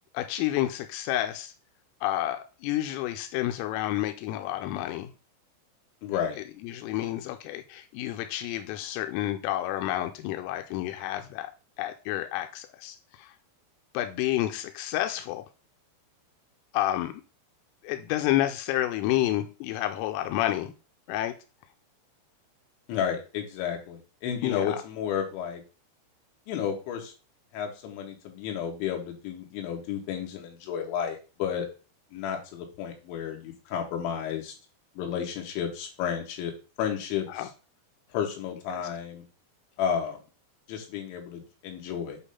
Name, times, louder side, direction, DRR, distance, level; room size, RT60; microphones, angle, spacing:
voice 1, 0.1-1.5 2.0-5.1 6.6-11.5 11.8-13.4 13.9-15.4 16.7-17.1 17.8-20.7 21.1-21.3 24.4-24.8 37.3-37.5 38.7-38.8, left 14 dB, 90° left, 6 dB, 3.2 m, -30 dB
voice 2, 6.0-6.4 22.9-25.6 26.5-27.1 27.5-31.7 32.1-34.5 35.0-36.5 36.8-37.3 38.1-39.3 39.8-40.2 40.7-42.2, left 8 dB, 70° left, 2 dB, 3.7 m, -32 dB
8.3 x 2.9 x 5.5 m, 0.34 s
omnidirectional pair, 5.9 m